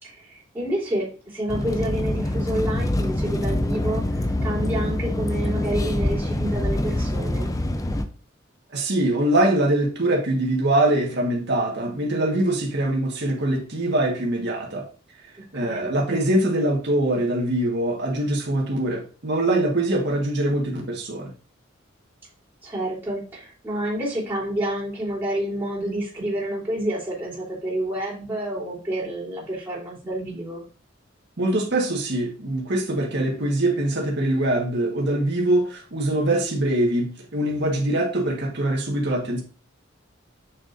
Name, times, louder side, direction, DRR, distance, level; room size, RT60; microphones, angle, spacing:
voice 1, 0.0-7.5 15.5-15.9 22.6-30.7, right 1 dB, 10° right, 3.5 m, -29 dB
sound 1, 1.5-8.0, left 1 dB, 20° left, 0.5 m, -25 dB
voice 2, 8.7-14.9 15.5-21.3 31.4-39.4, right 1 dB, 60° right, 1.6 m, -23 dB
6.5 x 6.2 x 2.6 m
head